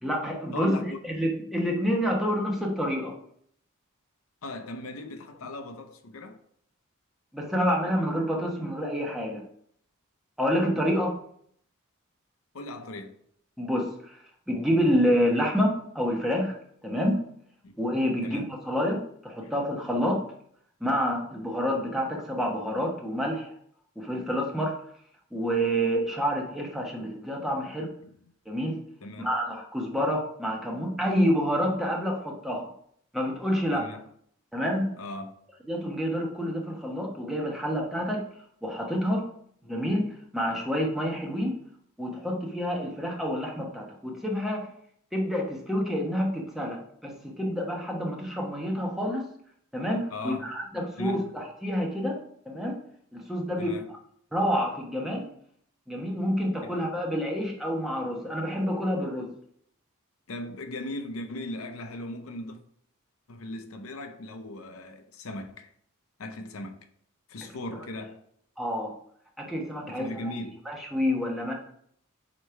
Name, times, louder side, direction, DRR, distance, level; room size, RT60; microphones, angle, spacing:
voice 1, 0.0-3.2 7.3-9.4 10.4-11.1 13.6-14.2 14.5-16.5 16.8-17.3 17.8-20.3 20.8-23.5 24.0-24.8 25.3-27.9 28.5-28.8 29.2-32.7 33.1-33.9 34.5-35.0 35.7-38.3 38.6-39.3 39.6-41.6 42.0-44.7 45.1-49.3 49.7-52.8 53.1-54.0 54.3-55.3 55.9-59.3 68.6-69.0 69.4-70.3 70.7-71.5, equal, ahead, 1.1 m, -28 dB
voice 2, 0.5-1.2 4.4-6.4 12.5-13.2 17.6-17.7 18.2-18.5 19.4-19.5 28.0-28.2 29.0-29.3 33.7-34.1 35.0-35.3 50.1-50.5 51.0-51.3 53.6-53.9 56.3-56.8 60.3-62.6 63.3-65.7 66.2-66.8 67.3-68.2 69.8-70.6, left 1 dB, 70° left, 0.6 m, -38 dB
5.1 x 4.2 x 4.6 m
head